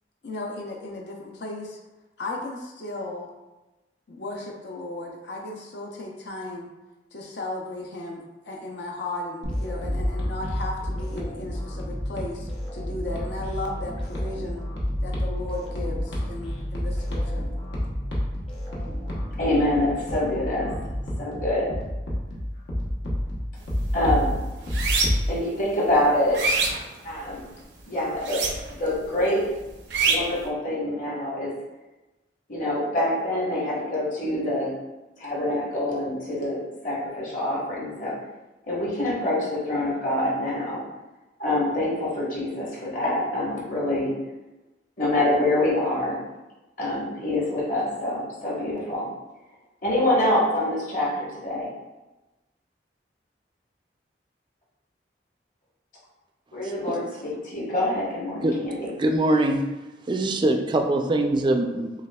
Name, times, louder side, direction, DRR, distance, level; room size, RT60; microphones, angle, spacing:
voice 1, 0.2-1.8 2.2-3.3 4.1-6.7 7.1-14.6 15.0-17.4, left 2 dB, 70° left, -1 dB, 0.6 m, -35 dB
sound 1, 9.4-25.3, equal, 85° left, 0.9 m, -30 dB
sound 2, 9.5-21.7, equal, 30° left, 0.8 m, -36 dB
voice 2, 19.4-20.8 21.2-21.7 23.9-24.3 25.3-26.4 27.0-27.4 27.9-28.4 28.7-29.5 30.1-31.5 32.5-34.7 35.2-38.1 38.7-40.8 41.4-44.2 45.0-46.2 46.8-49.1 49.8-51.7 56.5-58.9, left 1 dB, 50° left, -6 dB, 1.2 m, -25 dB
sound 3, 23.6-23.9 24.2-25.4 25.8-27.5 28.2-28.9 29.2-30.4, right 4 dB, 75° right, 0.5 m, -25 dB
voice 3, 56.6-57.0 58.4-58.6 59.0-59.6 60.1-61.9, right 1 dB, 25° right, 4 dB, 0.3 m, -23 dB
6.2 x 2.4 x 2.2 m, 1.1 s
head